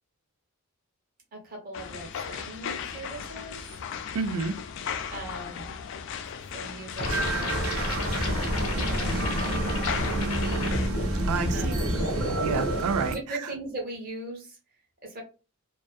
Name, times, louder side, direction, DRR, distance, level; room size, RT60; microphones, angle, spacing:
voice 1, 1.3-3.6 5.1-5.7 6.4-8.0 8.8-9.2 10.2-10.7 11.5-11.9 13.1-14.6 15.0-15.2, right 2 dB, 40° right, 0.9 m, -40 dB
sound 1, 1.7-10.9, left 7 dB, 55° left, 0.3 m, -37 dB
voice 2, 4.1-4.6 11.3-13.1, right 4 dB, 85° right, 0.4 m, -30 dB
sound 2, 7.0-12.8, left 1 dB, 85° left, 0.8 m, -30 dB
sound 3, 7.0-13.1, right 2 dB, 65° right, 0.7 m, -31 dB
2.5 x 2.4 x 2.2 m
head